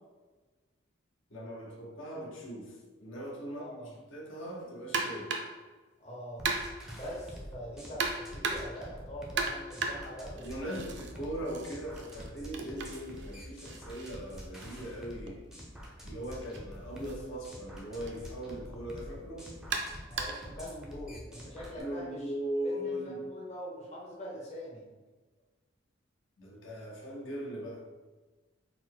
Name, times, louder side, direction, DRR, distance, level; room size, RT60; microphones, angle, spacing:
voice 1, 1.3-5.4 10.4-15.5 16.0-19.6 21.7-23.2 26.4-27.8, equal, 75° left, -2 dB, 0.9 m, -39 dB
voice 2, 3.5-3.9 6.0-6.4 6.8-10.9 20.1-22.3 22.6-24.8, equal, 35° left, -4 dB, 0.7 m, -43 dB
sound 1, 4.9-5.6 6.5-6.9 8.0-8.8 9.4-11.1 11.5-15.3 16.4-16.6 17.0-17.1 18.1-18.2 19.7-20.5, right 4 dB, 55° right, 0.4 m, -36 dB
sound 2, 6.4-21.8, equal, 5° right, 0.5 m, -47 dB
4.1 x 2.1 x 4.4 m, 1.3 s
head